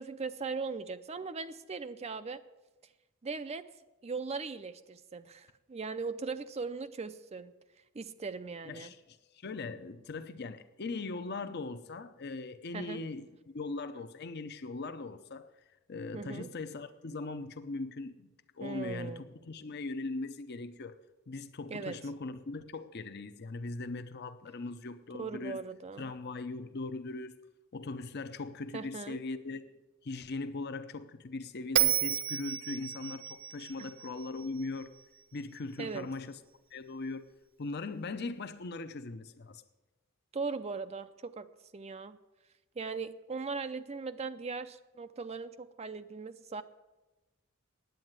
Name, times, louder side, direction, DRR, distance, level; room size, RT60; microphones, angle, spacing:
voice 1, 0.0-2.4 3.2-3.6 4.0-7.5 7.9-8.9 12.7-13.0 16.1-16.5 18.6-19.2 21.7-22.0 25.2-26.1 28.7-29.2 33.8-33.9 35.8-36.1 40.3-41.5 41.7-42.2 42.8-46.6, right 4 dB, 30° right, 0.4 m, -39 dB
voice 2, 8.6-15.5 15.9-18.3 18.6-21.0 21.3-25.6 26.0-27.4 27.7-29.7 30.0-34.9 35.3-36.4 36.7-37.3 37.6-39.6, left 3 dB, 50° left, 0.7 m, -40 dB
Bell, 31.8-35.0, right 11 dB, 60° right, 0.8 m, -32 dB
9.2 x 8.9 x 9.3 m
head